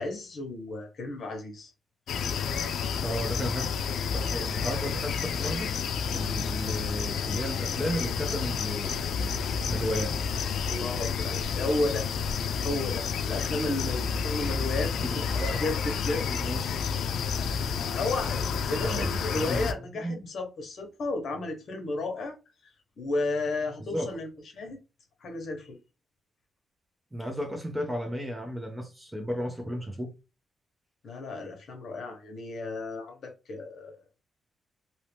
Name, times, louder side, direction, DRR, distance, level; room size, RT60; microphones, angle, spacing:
voice 1, 0.0-1.7 10.7-12.1 12.6-16.2 17.7-22.4 23.0-24.3 24.5-24.8 25.2-25.8 31.0-33.9, left 2 dB, 55° left, 1.1 m, -33 dB
sound 1, 2.1-19.7, left 6 dB, 85° left, 0.4 m, -30 dB
voice 2, 3.0-3.7 4.0-5.7 6.1-9.4 9.7-10.2 15.4-15.6 16.2-16.8 18.8-19.7 19.9-20.2 23.8-24.1 27.1-30.2, equal, 10° right, 0.6 m, -34 dB
2.9 x 2.8 x 3.4 m
wide cardioid pair, 155°, 0 cm